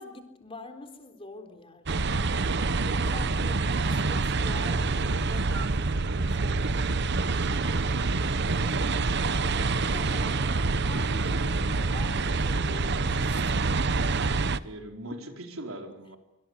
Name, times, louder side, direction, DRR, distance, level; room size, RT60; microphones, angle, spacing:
voice 1, 0.0-2.1 2.7-6.8 7.4-9.0 9.4-14.0 14.4-14.6, left 2 dB, 25° left, 6 dB, 3.8 m, -46 dB
sound 1, 1.9-14.6, right 3 dB, 55° right, 0.9 m, -26 dB
voice 2, 14.6-16.2, right 1 dB, 85° right, 4 dB, 4.3 m, -40 dB
26.0 x 25.5 x 8.1 m, 0.91 s
head